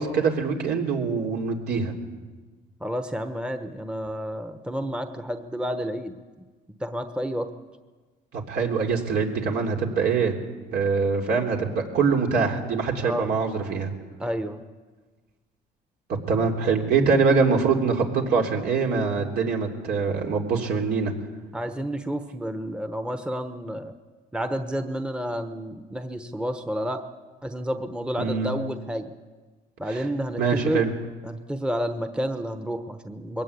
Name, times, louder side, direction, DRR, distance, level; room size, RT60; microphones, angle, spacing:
voice 1, 0.0-1.9 8.5-10.3 10.7-13.9 16.3-21.1 28.2-28.5 30.4-30.9, right 5 dB, 70° right, 1 dB, 3.3 m, -23 dB
voice 2, 2.8-6.2 6.8-7.5 13.0-13.4 14.2-14.6 21.5-23.9 24.3-27.0 27.4-29.1 29.8-30.8 31.2-33.4, equal, 5° right, 8 dB, 1.1 m, -30 dB
22.0 x 17.5 x 8.5 m, 1.3 s
cardioid pair, 110°, 17 cm